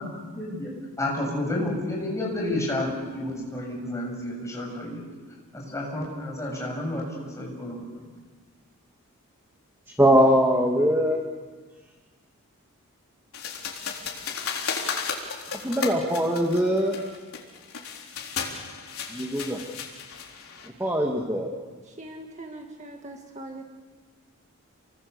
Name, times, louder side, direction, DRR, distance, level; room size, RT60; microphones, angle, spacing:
voice 1, 0.0-5.0 5.5-8.1, left 1 dB, 15° left, -2 dB, 7.1 m, -31 dB
voice 2, 10.0-11.2 15.6-17.0 19.1-19.6 20.8-21.5, equal, 10° right, 0 dB, 1.9 m, -21 dB
sound 1, 13.3-20.7, left 6 dB, 75° left, 4.0 m, -34 dB
voice 3, 21.9-23.6, right 1 dB, 30° right, 2 dB, 1.9 m, -41 dB
29.0 x 24.0 x 7.0 m, 1.4 s
head